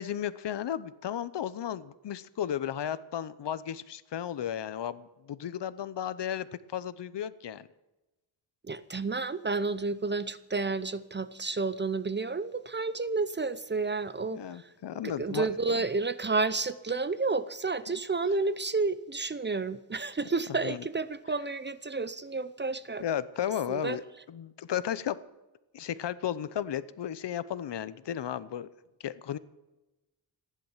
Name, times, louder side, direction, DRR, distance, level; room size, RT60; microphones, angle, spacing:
voice 1, 0.0-6.5 6.7-7.7 14.3-15.5 20.6-20.8 23.0-24.0 24.3-25.2 25.7-28.7 29.0-29.4, left 10 dB, 65° left, 16 dB, 0.8 m, -34 dB
voice 2, 8.6-14.7 15.0-23.0 23.7-24.0, right 3 dB, 25° right, 14 dB, 0.6 m, -31 dB
15.0 x 10.5 x 7.3 m, 1.0 s
wide cardioid pair, 135°, 45 cm